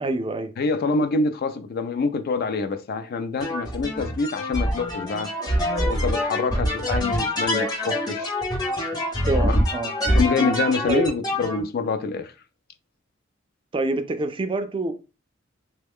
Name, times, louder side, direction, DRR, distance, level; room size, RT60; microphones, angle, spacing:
voice 1, 0.0-0.5 9.3-9.9 10.9-11.1 13.7-14.9, right 2 dB, 25° right, 0.3 m, -26 dB
voice 2, 0.6-5.3 5.7-8.3 9.4-9.6 10.1-12.3, left 4 dB, 50° left, 0.3 m, -26 dB
sound 1, 3.4-11.6, equal, 20° left, 0.7 m, -25 dB
3.1 x 2.2 x 3.4 m
head